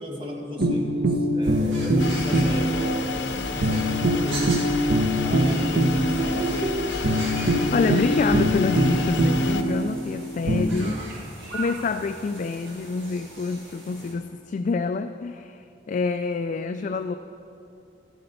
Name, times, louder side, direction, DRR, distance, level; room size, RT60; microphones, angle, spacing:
voice 1, 0.0-3.0 3.4-4.6 5.2-6.7 10.7-11.3, equal, 30° right, -1 dB, 1.8 m, -35 dB
sound 1, 0.6-10.7, right 1 dB, 70° right, 0.9 m, -23 dB
sound 2, 1.4-14.1, right 2 dB, 85° right, 3.4 m, -41 dB
sound 3, 2.0-9.6, left 4 dB, 85° left, 0.7 m, -31 dB
voice 2, 7.7-11.1 11.5-17.2, left 4 dB, 45° left, 9 dB, 0.3 m, -27 dB
13.0 x 8.1 x 6.8 m, 2.7 s
head